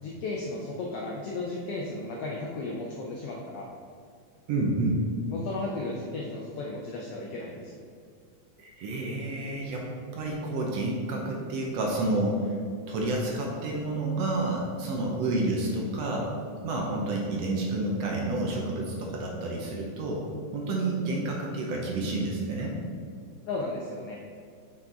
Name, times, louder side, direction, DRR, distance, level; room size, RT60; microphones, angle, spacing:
voice 1, 0.0-3.7 5.3-7.8 23.5-24.2, left 2 dB, 80° left, -2 dB, 1.3 m, -35 dB
voice 2, 4.5-5.0 8.6-9.9 10.1-12.5 12.9-16.3 16.6-20.2 20.5-22.8, right 2 dB, 70° right, -1 dB, 1.7 m, -29 dB
6.1 x 5.9 x 3.9 m, 2.1 s
omnidirectional pair, 3.6 m